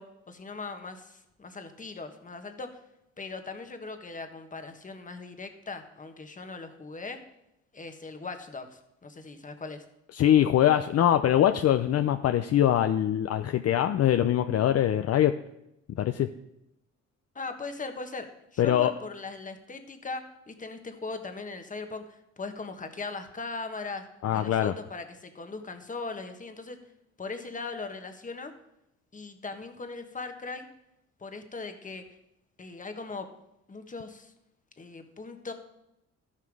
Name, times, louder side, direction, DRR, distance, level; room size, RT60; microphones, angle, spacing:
voice 1, 0.0-2.8 3.2-7.2 7.7-9.8 17.3-24.1 24.3-26.8 27.2-28.5 29.1-30.7 31.2-32.0 32.6-33.3 33.7-34.3 34.8-35.5, left 3 dB, 25° left, 7 dB, 1.3 m, -39 dB
voice 2, 10.1-15.3 16.0-16.3 18.6-18.9 24.2-24.7, left 11 dB, 55° left, 8 dB, 0.6 m, -23 dB
13.5 x 5.7 x 4.8 m, 0.85 s
cardioid pair, 90°, 30 cm